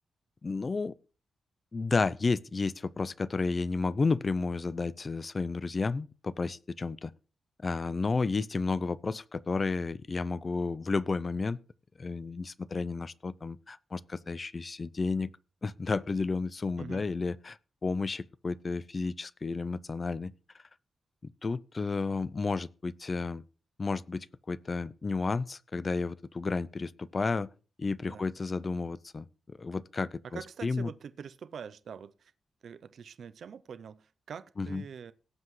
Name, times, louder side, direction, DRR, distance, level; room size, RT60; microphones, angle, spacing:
voice 1, 0.4-0.9 1.7-7.1 7.6-11.6 12.0-15.3 15.6-20.3 21.2-23.4 23.8-27.5 27.8-30.9 34.6-34.8, left 4 dB, 35° left, 0.4 m, -32 dB
voice 2, 30.3-32.3 32.6-35.1, right 7 dB, 70° right, 0.5 m, -44 dB
17.5 x 7.7 x 3.1 m
wide cardioid pair, 130°, 0 cm